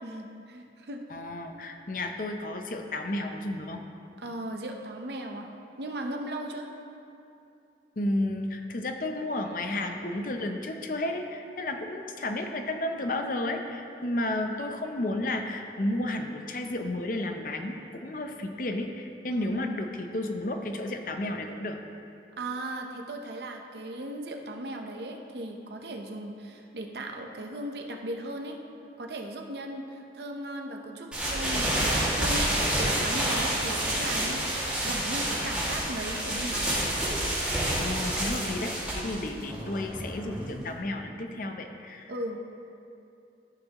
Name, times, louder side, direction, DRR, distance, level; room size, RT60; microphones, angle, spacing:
voice 1, 0.0-1.0 4.2-5.5 5.8-6.7 19.3-20.0 22.4-28.6 29.0-36.8 42.1-42.4, right 1 dB, 70° right, 3 dB, 0.7 m, -37 dB
voice 2, 1.1-3.8 8.0-21.8 37.7-42.1, left 1 dB, 50° left, 5 dB, 0.6 m, -32 dB
sound 1, 31.1-40.7, right 1 dB, 5° right, 2.0 m, -29 dB
13.5 x 6.5 x 3.0 m, 2.7 s
head